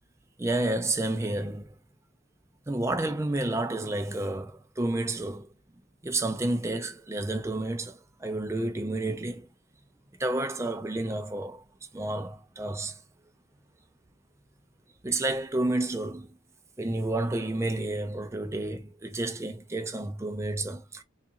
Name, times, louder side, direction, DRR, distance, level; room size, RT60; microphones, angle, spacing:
voice 1, 0.4-1.8 2.7-5.5 6.0-9.5 10.2-11.6 11.9-13.0 15.0-16.4 16.8-21.0, right 2 dB, 15° right, 0.4 m, -30 dB
3.9 x 2.4 x 2.8 m
head